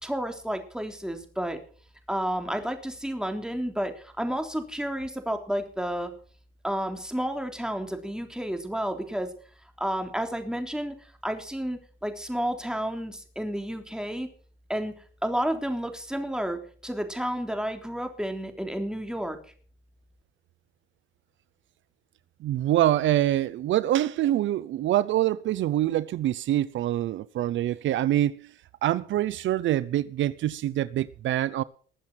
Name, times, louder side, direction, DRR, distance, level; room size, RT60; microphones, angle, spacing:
voice 1, 0.0-1.6 2.1-6.1 6.6-9.3 9.8-11.0 11.2-14.3 14.7-15.0 15.2-19.4, equal, 5° right, 3.5 m, -31 dB
voice 2, 22.4-28.5 28.8-31.6, right 13 dB, 75° right, 0.6 m, -25 dB
20.5 x 7.5 x 6.2 m
cardioid pair, 90°, 20 cm